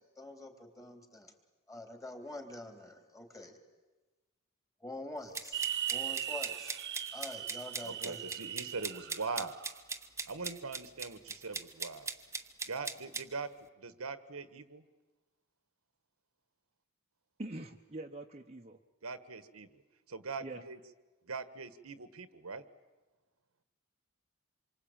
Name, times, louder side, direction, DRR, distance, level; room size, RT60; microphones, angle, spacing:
voice 1, 0.0-1.3 1.7-3.6 4.8-6.8 7.1-8.2, left 2 dB, 15° left, 5 dB, 3.5 m, -46 dB
sound 1, 5.3-13.3, right 4 dB, 15° right, 1.1 m, -40 dB
sound 2, 5.5-9.7, right 10 dB, 55° right, 1.2 m, -39 dB
voice 2, 7.8-9.6 10.3-12.1 12.7-13.5 13.8-14.8 19.0-19.7 20.1-20.8 21.2-22.6, right 4 dB, 90° right, 13 dB, 1.5 m, -41 dB
voice 3, 17.4-18.8 20.4-20.6, right 2 dB, 30° right, 3 dB, 1.0 m, -44 dB
27.0 x 24.0 x 9.0 m, 1.2 s
head